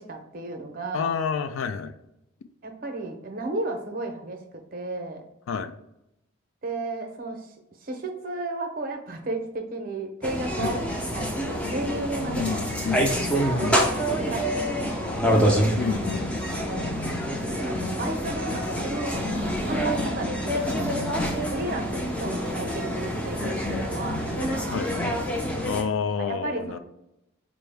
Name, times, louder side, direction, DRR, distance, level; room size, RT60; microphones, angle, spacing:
voice 1, 0.0-1.1 2.6-4.4 4.7-5.2 6.6-7.5 7.8-13.0 13.3-14.9 15.3-15.6 16.6-16.9 17.4-24.8 26.2-26.8, right 2 dB, 45° right, 4 dB, 0.6 m, -34 dB
voice 2, 0.9-1.9 5.5-5.7 10.6-10.8 12.3-13.2 13.6-13.8 15.8-16.3 24.7-24.9 25.6-26.8, left 6 dB, 80° left, 9 dB, 0.3 m, -29 dB
sound 1, 10.2-25.8, equal, 5° left, 0.4 m, -27 dB
4.4 x 2.0 x 3.3 m, 0.86 s
head